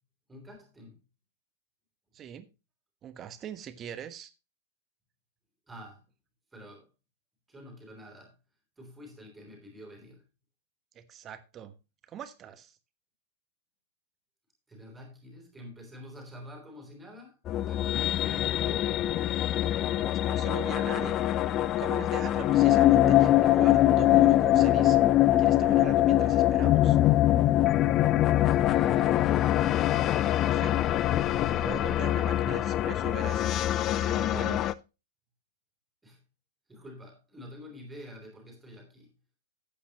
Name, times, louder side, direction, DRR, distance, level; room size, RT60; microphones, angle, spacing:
voice 1, 0.3-1.0 5.7-6.0 6.5-6.9 7.5-8.3 8.8-10.2 14.7-17.4 17.6-19.2 28.4-29.3 36.0-36.2 36.7-39.1, left 1 dB, 10° right, 3 dB, 3.3 m, -48 dB
voice 2, 2.1-2.5 3.0-4.3 10.9-11.7 12.1-12.8 20.2-21.2 21.8-25.0 25.4-27.0 30.3-30.8 31.4-34.7, right 9 dB, 25° right, 11 dB, 1.2 m, -41 dB
sound 1, 17.5-34.7, left 13 dB, 30° left, 0.5 m, -23 dB
13.0 x 8.5 x 3.0 m, 0.29 s
figure-of-eight pair, 95°, 0 cm